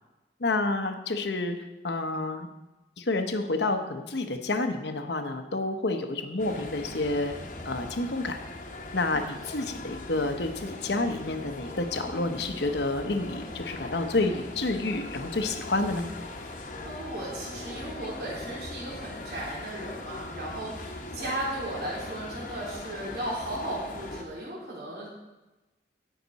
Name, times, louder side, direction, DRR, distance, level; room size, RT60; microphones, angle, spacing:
voice 1, 0.4-1.6 1.8-2.5 3.0-7.3 7.7-8.4 8.9-16.0, left 2 dB, 80° left, 6 dB, 1.0 m, -29 dB
sound 1, 6.4-24.2, left 2 dB, 45° left, 1.1 m, -40 dB
voice 2, 16.5-25.1, right 1 dB, 70° right, -6 dB, 3.3 m, -36 dB
17.5 x 5.9 x 4.1 m, 1.1 s
head